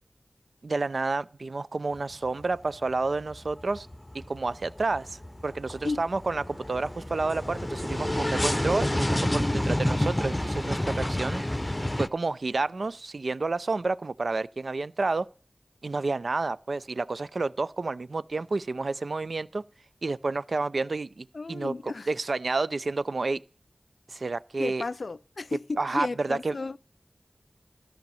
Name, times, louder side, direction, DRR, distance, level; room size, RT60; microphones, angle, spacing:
voice 1, 0.6-3.9 4.1-11.4 12.0-15.3 15.8-19.6 20.0-23.4 24.1-24.8 25.8-26.5, right 3 dB, 80° right, 0.5 m, -30 dB
sound 1, 1.9-2.6 2.9-12.1, left 1 dB, 20° left, 0.6 m, -29 dB
voice 2, 21.3-22.1 24.6-26.8, left 3 dB, 85° left, 0.4 m, -33 dB
13.5 x 5.2 x 6.9 m
wide cardioid pair, 65°, 0 cm